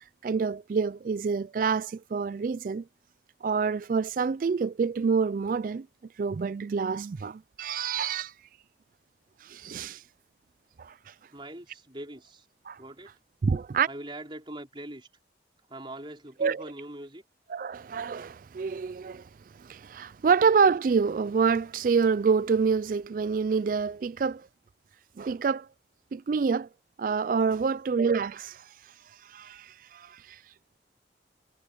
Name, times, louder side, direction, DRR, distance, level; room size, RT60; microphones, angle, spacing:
voice 1, 0.2-2.8 3.4-5.9 6.2-8.3 9.4-10.0 10.8-10.9 12.7-12.8 13.4-13.9 16.4-16.6 17.5-19.2 19.6-24.4 25.2-25.7 26.1-26.7 27.0-28.6 29.3-30.2, right 5 dB, 50° right, 0.3 m, -27 dB
voice 2, 11.3-12.5 12.8-13.1 13.8-15.1 15.7-17.2, right 1 dB, 30° right, 4.8 m, -42 dB
head